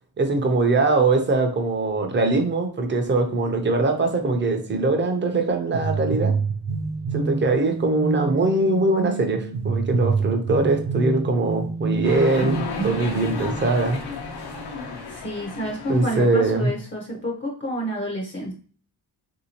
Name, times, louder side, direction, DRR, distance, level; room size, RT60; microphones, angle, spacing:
voice 1, 0.2-6.3 7.1-14.0 15.9-16.7, right 3 dB, 30° right, 4 dB, 0.5 m, -22 dB
sound 1, 5.7-13.3, right 4 dB, 85° right, 0.8 m, -27 dB
sound 2, 12.0-16.7, left 3 dB, 80° left, 0.8 m, -32 dB
voice 2, 15.1-18.5, equal, 30° left, -1 dB, 0.6 m, -29 dB
3.5 x 2.7 x 2.8 m, 0.42 s
wide cardioid pair, 170°, 40 cm